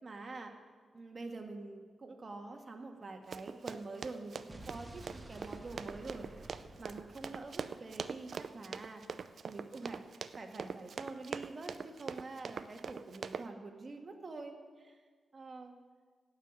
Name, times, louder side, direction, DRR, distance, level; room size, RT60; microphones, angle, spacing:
voice 1, 0.0-0.5 0.9-9.0 9.4-15.0 15.3-15.7, right 3 dB, 45° right, 3 dB, 1.7 m, -46 dB
Run, 3.3-13.5, right 6 dB, 70° right, 0.5 m, -43 dB
Explosion, 4.5-8.6, right 1 dB, 25° right, 1.4 m, -52 dB
17.0 x 5.9 x 7.4 m, 1.5 s
cardioid pair, 75°, 0 cm